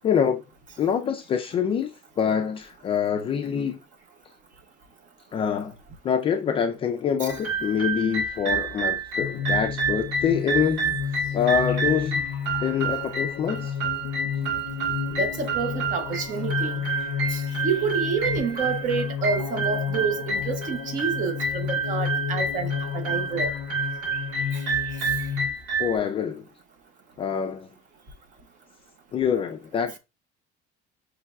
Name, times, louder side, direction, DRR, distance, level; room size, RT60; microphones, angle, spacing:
voice 1, 0.0-0.4 0.8-3.8 5.3-5.8 6.0-12.2 12.6-13.8 25.8-26.4 27.2-27.7 29.1-30.0, left 7 dB, 25° left, 0.4 m, -25 dB
sound 1, 7.3-25.9, right 4 dB, 85° right, 1.6 m, -29 dB
sound 2, 9.2-25.5, left 8 dB, 85° left, 0.5 m, -32 dB
voice 2, 15.2-16.8 17.3-23.5 24.5-24.6, right 5 dB, 40° right, 0.9 m, -28 dB
5.7 x 3.2 x 2.3 m
cardioid pair, 160°, 21 cm